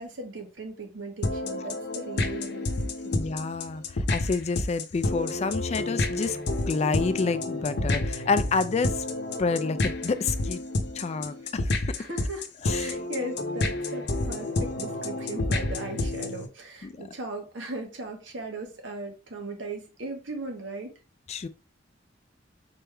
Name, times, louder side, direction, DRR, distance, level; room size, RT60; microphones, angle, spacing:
voice 1, 0.0-3.3 10.9-11.0 12.0-20.9, right 2 dB, 80° right, 1.4 m, -38 dB
sound 1, 1.2-16.5, left 2 dB, 65° left, 0.7 m, -29 dB
voice 2, 3.1-6.4 6.7-9.1 9.4-10.6 10.9-12.0 12.6-13.0 16.8-17.1 21.3-21.5, left 4 dB, 35° left, 0.3 m, -29 dB
4.2 x 3.5 x 3.4 m
head